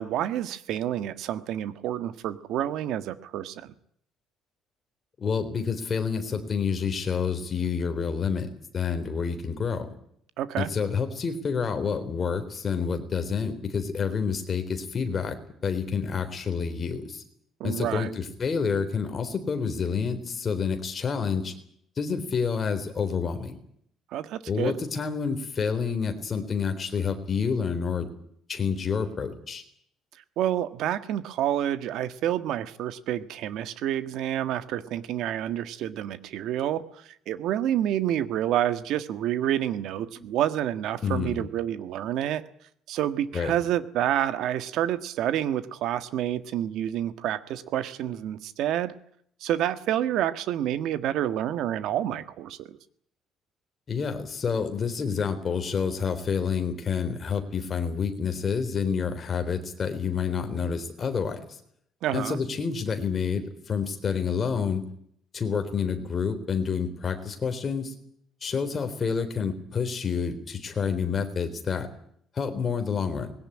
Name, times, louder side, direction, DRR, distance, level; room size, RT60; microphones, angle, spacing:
voice 1, 0.0-3.7 10.4-10.7 17.6-18.1 24.1-24.8 30.4-42.4 42.9-48.9 49.4-52.8 62.0-62.4, right 11 dB, 70° right, 12 dB, 1.5 m, -28 dB
voice 2, 5.2-8.5 8.7-9.9 10.6-15.4 15.6-17.2 17.6-21.5 22.0-23.6 24.5-28.1 28.5-29.6 40.2-40.3 41.0-41.4 43.3-43.5 53.9-61.4 62.1-64.8 65.3-67.9 68.4-71.9 72.4-73.3, left 6 dB, 30° left, 7 dB, 3.7 m, -28 dB
21.0 x 17.5 x 9.9 m, 0.67 s
cardioid pair, 145°, 0 cm